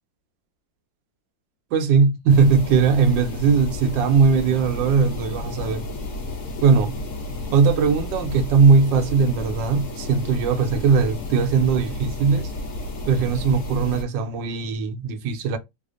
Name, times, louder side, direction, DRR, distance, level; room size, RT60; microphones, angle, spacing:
voice 1, 1.7-5.9 6.6-6.9 7.5-12.5 13.1-15.6, right 5 dB, 75° right, 1.2 m, -19 dB
sound 1, 2.3-14.0, left 2 dB, 55° left, 1.0 m, -32 dB
3.3 x 2.1 x 3.6 m
omnidirectional pair, 2.1 m